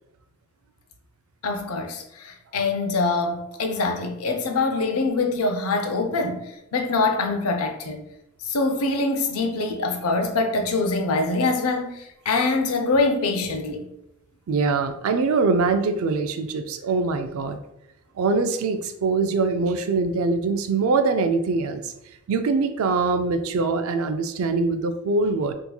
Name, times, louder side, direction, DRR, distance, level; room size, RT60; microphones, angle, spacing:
voice 1, 1.4-8.0 8.4-13.9, left 3 dB, 80° left, 0.5 m, -24 dB
voice 2, 14.5-17.6 18.2-21.9 22.3-25.5, right 4 dB, 75° right, 0.4 m, -23 dB
3.5 x 2.9 x 2.2 m
head